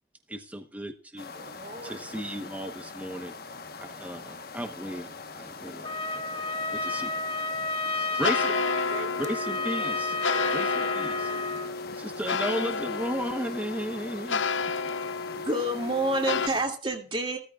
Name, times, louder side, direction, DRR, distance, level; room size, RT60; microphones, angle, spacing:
voice 1, 0.3-1.3 1.8-3.3 3.7-7.2 8.2-8.7 9.3-10.1 10.5-11.2 11.9-14.4, equal, 10° right, 1.0 m, -35 dB
sound 1, 1.2-16.6, left 4 dB, 55° left, 1.2 m, -43 dB
voice 2, 1.2-2.2 8.9-10.9, right 2 dB, 45° right, 4.8 m, -44 dB
sound 2, 5.6-16.5, left 4 dB, 85° left, 0.6 m, -32 dB
Trumpet, 5.8-11.7, left 2 dB, 30° left, 1.6 m, -31 dB
voice 3, 15.3-17.4, right 1 dB, 30° right, 2.5 m, -28 dB
16.0 x 13.5 x 2.4 m
head